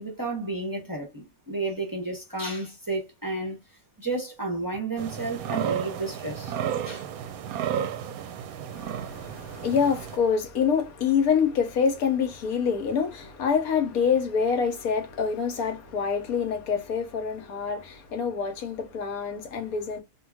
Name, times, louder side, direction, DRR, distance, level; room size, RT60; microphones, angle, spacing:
voice 1, 0.0-3.6 4.0-6.6 6.9-7.1, right 2 dB, 20° right, 0.7 m, -32 dB
sound 1, 5.0-10.2, right 9 dB, 75° right, 1.0 m, -32 dB
voice 2, 8.7-20.0, left 6 dB, 70° left, 1.2 m, -26 dB
3.0 x 2.6 x 2.2 m
omnidirectional pair, 1.6 m